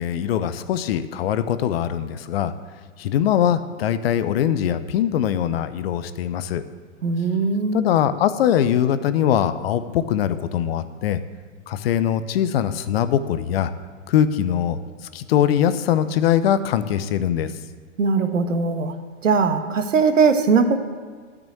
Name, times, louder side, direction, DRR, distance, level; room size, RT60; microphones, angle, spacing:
voice 1, 0.0-2.5 3.0-6.6 7.7-11.2 11.7-13.7 14.1-14.8 15.1-17.5, left 10 dB, 50° left, 12 dB, 0.8 m, -22 dB
voice 2, 7.0-7.8 18.0-18.9 19.2-20.8, right 5 dB, 75° right, 7 dB, 1.4 m, -20 dB
12.0 x 6.2 x 7.9 m, 1.5 s
hypercardioid pair, 115°, 38 cm